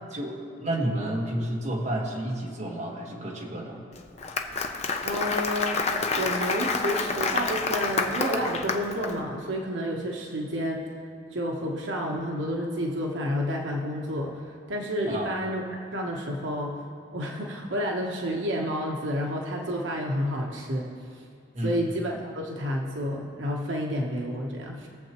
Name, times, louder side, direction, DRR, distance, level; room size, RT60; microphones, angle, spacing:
voice 1, 0.1-3.8 15.1-15.4 21.5-21.8, right 1 dB, 35° right, -2 dB, 1.5 m, -31 dB
Applause, 4.0-9.1, left 4 dB, 35° left, 0.6 m, -28 dB
voice 2, 5.0-5.8 6.1-10.9 11.3-15.6 15.9-16.8 17.1-20.9 21.1-21.2 21.6-24.9, equal, 75° right, -1 dB, 1.1 m, -30 dB
20.5 x 7.4 x 3.0 m, 2.4 s
head